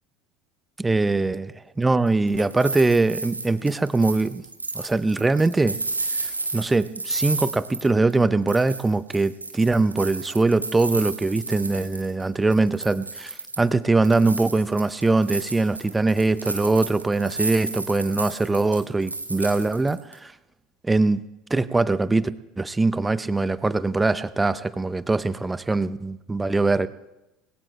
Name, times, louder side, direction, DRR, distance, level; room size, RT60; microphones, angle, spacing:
voice 1, 0.8-1.5 1.8-4.4 4.7-5.8 6.2-20.3 20.8-21.2 21.5-22.3 22.6-26.9, right 3 dB, 15° right, 15 dB, 0.6 m, -22 dB
sound 1, 2.1-8.2 8.5-12.2 12.5-13.7 14.0-20.1, right 3 dB, 90° right, 1.1 m, -32 dB
26.0 x 20.5 x 2.2 m, 0.98 s
figure-of-eight pair, 70°, 0 cm